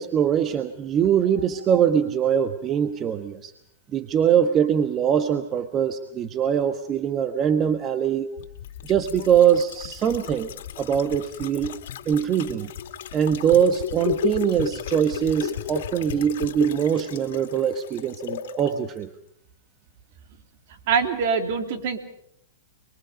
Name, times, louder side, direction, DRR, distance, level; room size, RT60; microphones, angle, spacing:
voice 1, 0.0-3.5 3.9-8.3 8.8-10.5 10.8-11.8 12.1-12.7 13.1-19.1, right 8 dB, 30° right, 9 dB, 1.2 m, -22 dB
sound 1, 8.4-18.7 19.0-19.1, left 10 dB, 65° left, 2.3 m, -34 dB
voice 2, 20.9-22.0, right 6 dB, 55° right, 5 dB, 3.4 m, -23 dB
29.5 x 22.5 x 5.2 m, 0.74 s
hypercardioid pair, 120°, 0 cm